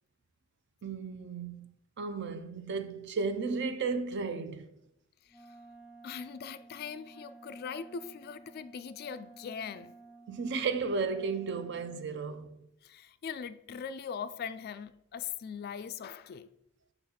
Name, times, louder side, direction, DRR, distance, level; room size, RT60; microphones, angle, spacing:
voice 1, 0.8-1.7 2.0-4.7 10.3-12.5, right 4 dB, 55° right, 0.5 m, -34 dB
voice 2, 5.2-5.6 6.0-9.9 12.8-16.5, left 6 dB, 45° left, 0.3 m, -41 dB
Wind instrument woodwind instrument, 5.3-12.1, right 3 dB, 5° right, 0.9 m, -54 dB
6.7 x 3.9 x 4.2 m
head